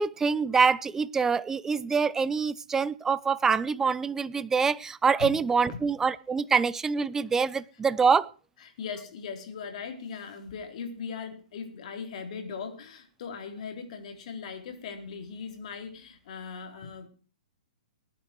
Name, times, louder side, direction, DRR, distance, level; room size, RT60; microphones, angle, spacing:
voice 1, 0.0-8.3, right 5 dB, 10° right, 0.6 m, -25 dB
voice 2, 8.6-17.1, left 5 dB, 55° left, 4.0 m, -39 dB
20.0 x 10.0 x 4.7 m
hypercardioid pair, 135°, 4 cm